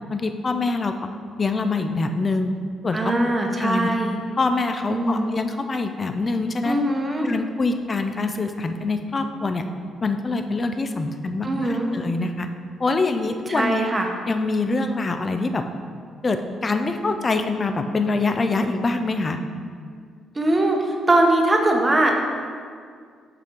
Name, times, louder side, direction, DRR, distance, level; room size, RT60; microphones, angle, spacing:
voice 1, 0.1-0.9 1.4-2.5 2.8-3.0 3.2-3.9 4.4-6.8 7.2-9.7 10.0-12.5 12.8-13.8 14.3-15.6 16.2-19.4, left 3 dB, 35° left, 7 dB, 0.5 m, -24 dB
voice 2, 2.9-4.2 4.9-5.3 6.6-7.3 11.4-11.9 13.5-14.1 20.3-22.2, right 1 dB, 20° right, 2 dB, 0.9 m, -21 dB
5.9 x 5.1 x 4.4 m, 2.1 s
cardioid pair, 90°, 0 cm